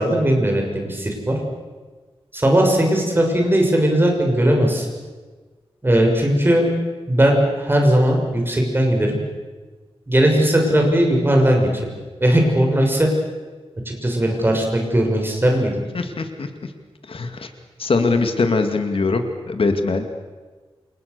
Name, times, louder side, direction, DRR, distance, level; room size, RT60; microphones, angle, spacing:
voice 1, 0.0-1.4 2.3-4.9 5.8-6.7 7.1-9.1 10.1-11.7 12.2-13.1 13.9-15.8, right 1 dB, 20° right, 1 dB, 6.3 m, -18 dB
voice 2, 15.9-16.7 17.1-17.5 17.8-20.0, left 3 dB, 60° left, 6 dB, 2.3 m, -22 dB
28.5 x 27.5 x 6.9 m, 1.3 s
wide cardioid pair, 140°, 10 cm